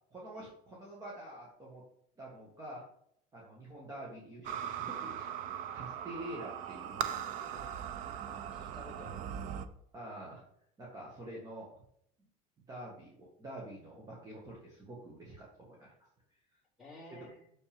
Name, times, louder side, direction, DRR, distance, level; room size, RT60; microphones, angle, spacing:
voice 1, 0.1-1.8 2.2-2.8 3.3-7.7 9.9-10.4 10.8-11.7 12.7-15.9 17.1-17.3, right 1 dB, 20° right, -4 dB, 1.8 m, -47 dB
sound 1, 4.4-9.6, right 9 dB, 45° right, 0.6 m, -39 dB
voice 2, 8.3-9.7 16.8-17.4, left 2 dB, ahead, -5 dB, 3.4 m, -53 dB
7.6 x 6.9 x 3.6 m, 0.68 s
cardioid pair, 170°, 17 cm